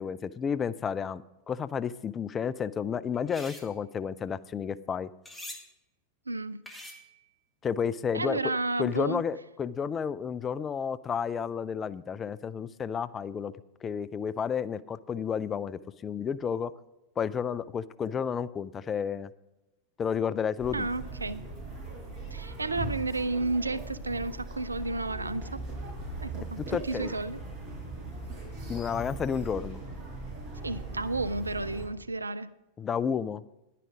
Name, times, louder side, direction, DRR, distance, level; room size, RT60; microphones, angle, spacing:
voice 1, 0.0-5.1 7.6-8.5 8.8-13.5 13.8-16.7 17.2-19.3 20.0-20.9 26.6-27.1 28.7-29.8 32.8-33.4, left 7 dB, 20° left, 17 dB, 0.4 m, -31 dB
sound 1, 3.1-3.7 5.3-5.6 6.7-7.2, left 1 dB, 5° left, 1.8 m, -44 dB
voice 2, 6.3-6.6 8.1-9.2 20.7-21.4 22.3-25.6 26.2-27.4 30.6-32.5, right 3 dB, 80° right, 15 dB, 0.4 m, -32 dB
sound 2, 20.6-31.9, right 2 dB, 45° right, 5.1 m, -39 dB
10.5 x 10.0 x 4.9 m, 1.0 s
figure-of-eight pair, 90°, 0 cm